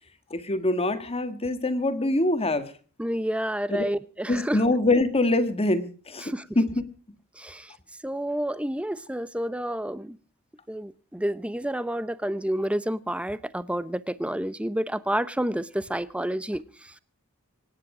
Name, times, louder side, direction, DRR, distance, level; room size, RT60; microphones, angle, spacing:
voice 1, 0.3-2.7 3.7-3.8 4.3-6.8, left 2 dB, 25° left, 10 dB, 1.6 m, -24 dB
voice 2, 3.0-4.6 6.2-6.5 7.4-7.7 8.0-10.2 10.7-16.6, right 1 dB, 5° right, 16 dB, 0.7 m, -29 dB
25.0 x 10.5 x 4.9 m, 0.40 s
head